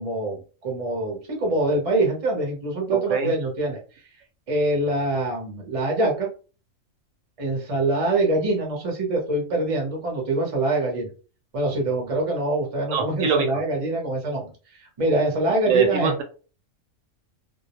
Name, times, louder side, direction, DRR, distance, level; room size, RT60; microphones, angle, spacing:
voice 1, 0.0-3.8 4.5-6.3 7.4-11.1 11.5-16.1, right 2 dB, 35° right, -1 dB, 0.7 m, -24 dB
voice 2, 2.9-3.3 12.9-13.6 15.7-16.2, right 5 dB, 80° right, 4 dB, 1.0 m, -24 dB
2.3 x 2.0 x 2.8 m, 0.36 s
omnidirectional pair, 1.3 m